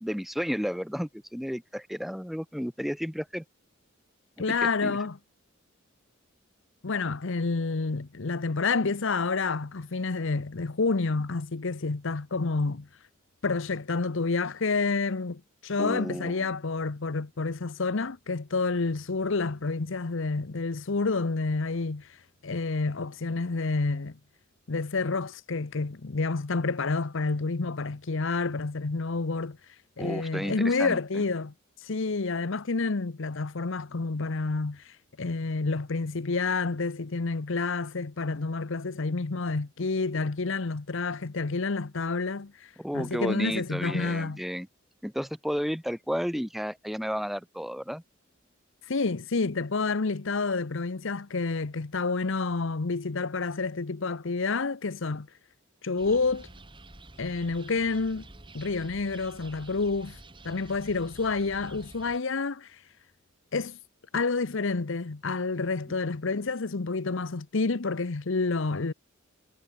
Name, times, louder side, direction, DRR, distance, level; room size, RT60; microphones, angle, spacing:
voice 1, 0.0-3.4 4.5-4.6 4.8-5.0 15.8-16.5 30.0-31.2 42.8-44.7 45.0-48.0, equal, ahead, 1.9 m, -32 dB
voice 2, 4.4-5.2 6.8-12.9 13.4-22.1 22.4-24.2 24.7-29.6 30.0-31.5 31.8-34.8 35.2-42.5 42.9-44.4 48.9-55.3 55.8-56.5 57.2-58.3 58.5-60.2 60.4-62.7 63.5-63.8 64.1-68.9, left 3 dB, 65° left, 0.8 m, -29 dB
sound 1, 56.0-62.2, right 2 dB, 25° right, 2.9 m, -49 dB
head